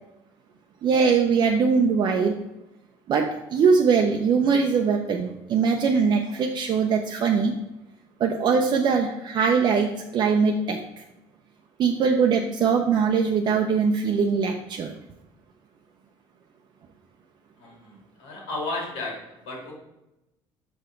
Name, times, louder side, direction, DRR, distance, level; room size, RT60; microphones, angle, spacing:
voice 1, 0.8-2.3 3.1-7.5 8.2-10.8 11.8-14.9, right 5 dB, 50° right, 2 dB, 0.6 m, -22 dB
voice 2, 17.6-19.2 19.4-19.8, left 2 dB, 85° left, -1 dB, 2.6 m, -33 dB
6.2 x 5.0 x 4.5 m, 0.93 s
cardioid pair, 115°, 10 cm